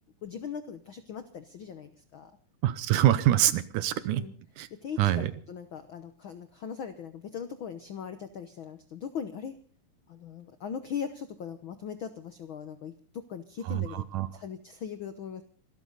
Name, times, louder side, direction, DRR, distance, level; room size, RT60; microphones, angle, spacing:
voice 1, 0.2-2.3 4.1-4.3 4.8-9.6 10.1-14.1 14.3-15.4, left 7 dB, 75° left, 10 dB, 1.1 m, -39 dB
voice 2, 2.6-4.2 4.6-4.7 5.0-5.3 13.7-14.3, right 13 dB, 75° right, 15 dB, 2.5 m, -25 dB
26.0 x 13.5 x 4.0 m, 0.43 s
omnidirectional pair, 3.7 m